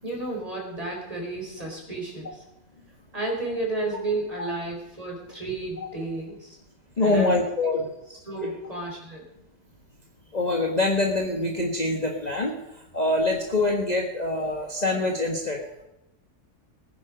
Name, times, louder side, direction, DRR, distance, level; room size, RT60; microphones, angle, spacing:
voice 1, 0.0-2.4 3.1-6.6 7.0-7.4 8.2-9.2, right 2 dB, 20° right, -1 dB, 4.5 m, -32 dB
voice 2, 7.0-7.9 10.3-12.5 12.9-15.6, left 2 dB, 25° left, 0 dB, 1.6 m, -24 dB
20.0 x 9.8 x 5.2 m, 0.88 s
omnidirectional pair, 1.7 m